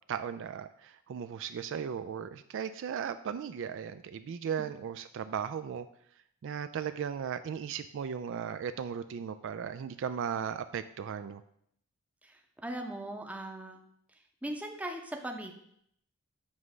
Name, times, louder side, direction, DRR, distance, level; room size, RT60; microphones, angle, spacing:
voice 1, 0.1-5.9 6.4-11.4, right 7 dB, 60° right, 11 dB, 0.3 m, -36 dB
voice 2, 12.2-13.8 14.4-15.5, right 1 dB, 5° right, 3 dB, 0.7 m, -39 dB
7.3 x 3.2 x 6.1 m, 0.70 s
head